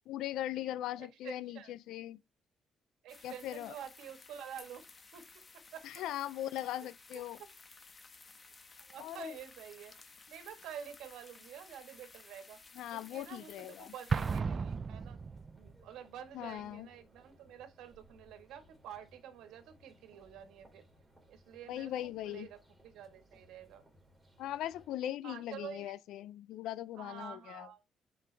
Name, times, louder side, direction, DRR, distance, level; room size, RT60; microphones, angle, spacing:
voice 1, 0.1-2.2 3.2-3.7 5.8-7.4 9.0-9.3 12.8-13.9 16.3-16.9 21.7-22.5 24.4-27.7, left 12 dB, 85° left, 0.3 m, -40 dB
voice 2, 1.0-1.7 3.0-4.8 5.1-5.3 5.5-6.0 6.8-6.9 7.4-7.5 8.9-12.6 12.9-15.2 15.5-20.8 21.3-21.9 22.2-23.8 25.2-25.9 26.9-27.8, right 9 dB, 90° right, 1.5 m, -49 dB
sound 1, 3.1-14.4, left 4 dB, 35° left, 1.1 m, -56 dB
sound 2, 14.0-24.9, equal, 5° right, 2.7 m, -64 dB
Explosion, 14.1-15.8, right 5 dB, 40° right, 0.3 m, -34 dB
6.8 x 5.0 x 3.3 m
cardioid pair, 90°, 0 cm